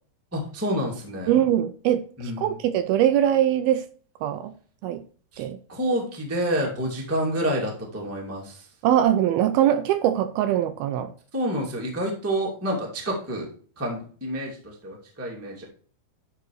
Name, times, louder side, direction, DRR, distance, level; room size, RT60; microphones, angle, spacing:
voice 1, 0.3-1.4 2.2-2.6 5.3-5.4 5.7-8.7 11.3-13.5 13.8-15.6, equal, 5° right, 1.2 m, -28 dB
voice 2, 1.3-2.0 2.4-3.8 4.2-4.5 4.8-5.0 5.4-5.6 8.8-11.1, right 11 dB, 80° right, 2.4 m, -22 dB
11.5 x 4.0 x 4.7 m
omnidirectional pair, 4.6 m